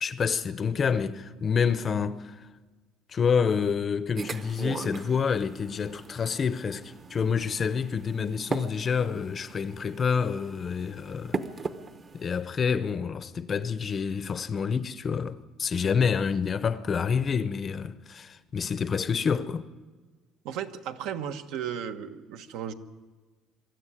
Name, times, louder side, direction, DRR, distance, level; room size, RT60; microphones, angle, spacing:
voice 1, 0.0-2.5 3.1-11.4 12.1-19.7, left 6 dB, 25° left, 0.7 m, -28 dB
sound 1, 4.2-12.4, right 4 dB, 25° right, 0.9 m, -39 dB
voice 2, 20.4-22.7, right 8 dB, 70° right, 1.2 m, -35 dB
23.5 x 13.5 x 9.9 m
cardioid pair, 160°, 0 cm